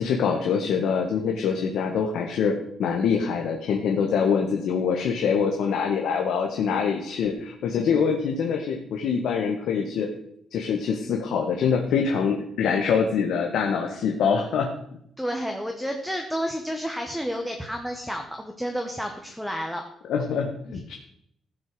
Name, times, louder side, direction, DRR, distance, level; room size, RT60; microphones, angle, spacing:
voice 1, 0.0-10.1 10.5-14.7 20.1-20.9, left 6 dB, 80° left, 2 dB, 1.6 m, -24 dB
voice 2, 15.2-19.8 20.7-20.8, equal, ahead, 3 dB, 1.2 m, -30 dB
15.0 x 6.4 x 6.8 m, 0.70 s
cardioid pair, 150°, 0 cm